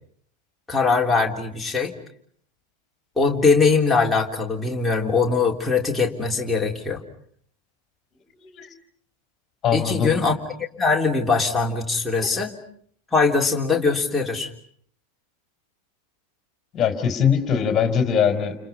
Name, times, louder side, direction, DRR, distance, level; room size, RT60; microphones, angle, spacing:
voice 1, 0.7-1.9 3.2-7.0 9.7-10.3 10.6-12.6 13.1-14.5, left 4 dB, 5° left, -1 dB, 3.5 m, -21 dB
voice 2, 9.6-10.1 12.2-12.3 16.7-18.6, left 7 dB, 25° left, 6 dB, 4.1 m, -21 dB
30.0 x 29.5 x 5.6 m, 0.62 s
figure-of-eight pair, 90°, 0 cm